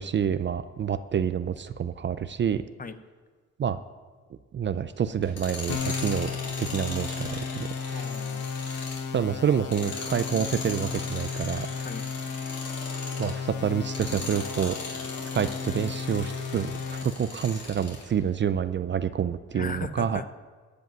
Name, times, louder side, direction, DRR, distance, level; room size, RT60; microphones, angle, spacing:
voice 1, 0.0-2.6 3.6-3.8 4.5-8.0 9.1-11.7 13.2-14.8 15.3-20.2, right 8 dB, 40° right, 13 dB, 0.5 m, -28 dB
Tools, 5.2-13.4 13.8-18.1, left 3 dB, 55° left, 3.6 m, -39 dB
sound 1, 5.7-17.0, left 6 dB, 70° left, 1.1 m, -34 dB
voice 2, 7.9-8.5 8.7-8.9 11.8-12.0 19.5-20.3, left 4 dB, 30° left, 11 dB, 0.8 m, -37 dB
14.5 x 5.4 x 9.1 m, 1.5 s
cardioid pair, 90°, 30 cm